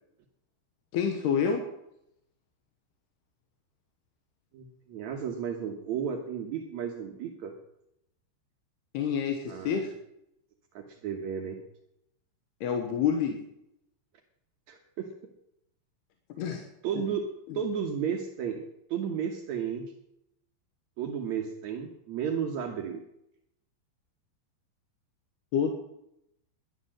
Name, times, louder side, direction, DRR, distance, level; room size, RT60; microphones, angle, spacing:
voice 1, 0.9-1.7 8.9-9.9 12.6-13.4 16.4-16.7 25.5-25.7, left 7 dB, 70° left, 4 dB, 3.0 m, -28 dB
voice 2, 4.5-7.5 9.5-9.8 10.7-11.6 14.7-15.1 16.8-18.6 18.9-19.8 21.0-23.0, right 7 dB, 80° right, 3 dB, 1.6 m, -33 dB
12.5 x 11.0 x 7.6 m, 0.80 s
omnidirectional pair, 5.2 m